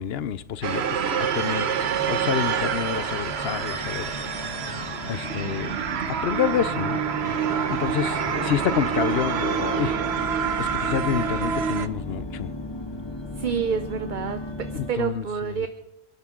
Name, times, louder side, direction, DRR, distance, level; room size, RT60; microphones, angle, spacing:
voice 1, 0.0-1.7 2.1-4.1 4.9-5.7 6.0-7.0 7.7-10.0 10.6-12.5 14.7-15.5, left 9 dB, 70° left, 0.9 m, -28 dB
sound 1, 0.6-11.9, right 7 dB, 75° right, 1.1 m, -27 dB
sound 2, 1.6-14.9, left 2 dB, 25° left, 1.3 m, -36 dB
sound 3, 3.1-12.0, left 1 dB, 30° right, 4.5 m, -43 dB
voice 2, 13.4-15.7, right 7 dB, 50° right, 0.9 m, -28 dB
29.0 x 11.5 x 3.7 m
omnidirectional pair, 1.1 m